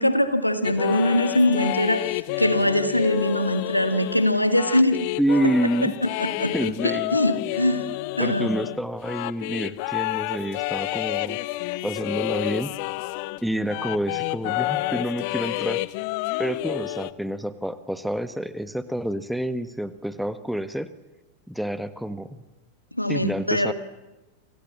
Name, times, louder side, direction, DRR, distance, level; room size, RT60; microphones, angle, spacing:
voice 1, 0.0-5.0 5.8-5.9 6.2-6.5 7.1-7.8 8.2-8.5 23.0-23.7, left 1 dB, 85° left, 9 dB, 2.1 m, -22 dB
sound 1, 0.6-13.4 13.7-17.1, left 20 dB, 45° left, 0.9 m, -29 dB
voice 2, 5.2-5.9 6.5-7.2 8.2-11.4 11.8-12.7 13.4-15.8 16.4-20.9 21.5-22.3 23.1-23.7, equal, ahead, 13 dB, 1.5 m, -28 dB
29.0 x 27.0 x 7.5 m, 1.1 s
figure-of-eight pair, 90°, 0 cm